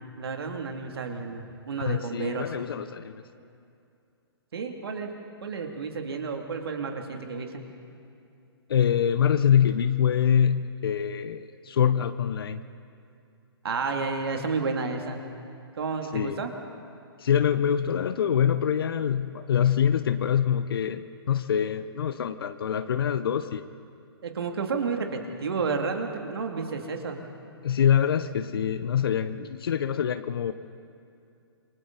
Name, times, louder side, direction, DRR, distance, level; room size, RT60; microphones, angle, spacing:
voice 1, 0.2-2.5 4.5-5.2 5.4-7.6 13.6-15.2 15.7-16.5 24.2-27.3, right 4 dB, 65° right, 3 dB, 2.6 m, -31 dB
voice 2, 1.8-3.2 8.7-12.6 16.1-16.4 17.2-23.6 27.6-30.5, left 8 dB, 60° left, 11 dB, 0.8 m, -25 dB
27.5 x 23.5 x 4.0 m, 2.5 s
figure-of-eight pair, 125°, 14 cm